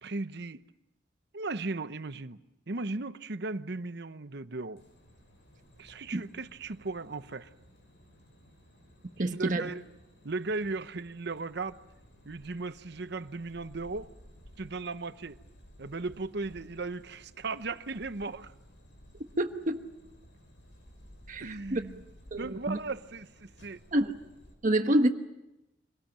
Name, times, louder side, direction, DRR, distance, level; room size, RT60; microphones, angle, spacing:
voice 1, 0.0-0.6 1.3-2.4 2.7-4.8 5.8-7.5 9.3-9.8 10.2-11.8 12.2-14.1 14.6-15.4 15.8-18.5 21.4-22.0 22.4-23.8, right 3 dB, 60° right, 0.9 m, -36 dB
sound 1, 4.8-24.5, equal, 75° left, 6.9 m, -56 dB
voice 2, 9.2-9.7 19.4-19.8 21.3-21.8 22.3-22.8 23.9-24.1 24.6-25.1, right 1 dB, 45° right, 1.2 m, -27 dB
25.5 x 19.0 x 9.0 m
head